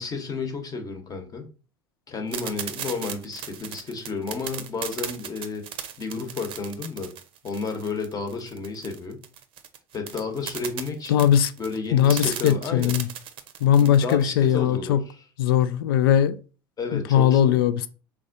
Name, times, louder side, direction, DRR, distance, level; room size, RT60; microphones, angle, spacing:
voice 1, 0.0-1.5 2.1-5.7 6.0-7.1 7.4-9.2 9.9-11.3 11.6-13.0 13.8-15.2 16.8-17.6, left 4 dB, 30° left, 1.1 m, -32 dB
sound 1, 2.3-14.2, right 9 dB, 45° right, 0.6 m, -36 dB
voice 2, 11.1-11.5 11.9-13.1 13.6-15.0 15.4-16.4 16.9-17.9, left 10 dB, 75° left, 0.4 m, -20 dB
4.1 x 3.5 x 2.6 m
hypercardioid pair, 75°, 12 cm